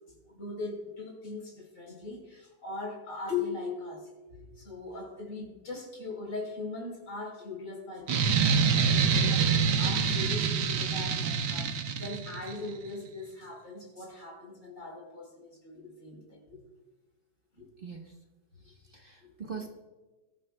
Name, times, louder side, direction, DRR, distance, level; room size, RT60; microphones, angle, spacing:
voice 1, 0.3-16.6 17.6-17.7 18.6-18.7 19.2-19.4, left 3 dB, 45° left, -1 dB, 4.7 m, -40 dB
sound 1, 8.1-12.5, right 6 dB, 75° right, 1.5 m, -26 dB
voice 2, 17.8-18.1 18.6-19.7, right 5 dB, 35° right, 1 dB, 1.4 m, -42 dB
23.0 x 14.0 x 2.3 m, 1.2 s
omnidirectional pair, 1.9 m